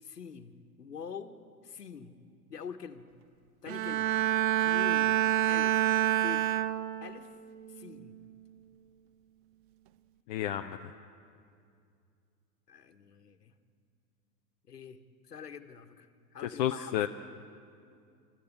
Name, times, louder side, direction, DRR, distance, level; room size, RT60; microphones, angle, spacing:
voice 1, 0.0-2.2 2.5-3.1 3.6-4.1 4.6-5.2 5.5-5.8 6.2-6.5 7.0-7.3 7.7-8.2 12.7-13.5 14.7-17.0, left 6 dB, 75° left, 11 dB, 1.3 m, -45 dB
Bowed string instrument, 3.7-7.2 7.7-8.1, right 13 dB, 30° right, 0.6 m, -27 dB
voice 2, 10.3-10.9 16.4-17.1, left 12 dB, 30° left, 8 dB, 0.5 m, -32 dB
27.5 x 14.0 x 8.2 m, 2.4 s
figure-of-eight pair, 95°, 49 cm